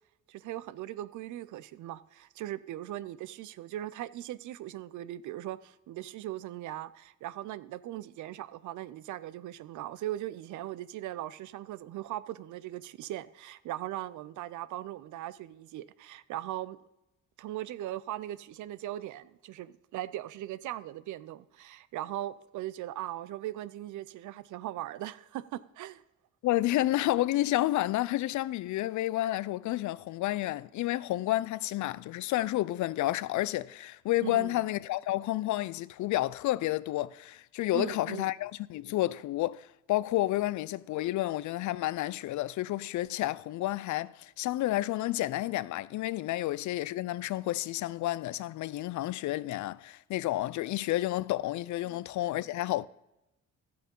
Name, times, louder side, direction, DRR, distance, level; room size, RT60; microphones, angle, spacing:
voice 1, 0.3-16.8 17.4-26.0 34.2-34.6 37.7-38.3 51.8-52.1, right 14 dB, 80° right, 0.6 m, -39 dB
voice 2, 26.4-52.9, left 16 dB, 70° left, 0.5 m, -30 dB
12.5 x 7.6 x 5.3 m
cardioid pair, 90°, 30 cm